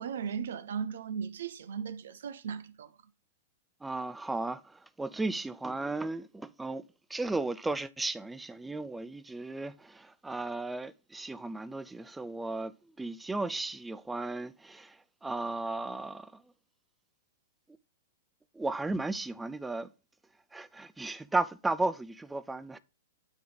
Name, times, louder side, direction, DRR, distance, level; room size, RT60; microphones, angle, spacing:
voice 1, 0.0-2.9, right 7 dB, 75° right, 0.6 m, -37 dB
voice 2, 3.8-6.8 7.1-16.4 18.5-19.9 20.5-22.8, right 2 dB, 5° right, 0.3 m, -35 dB
9.3 x 3.8 x 3.3 m
hypercardioid pair, 120°, 0 cm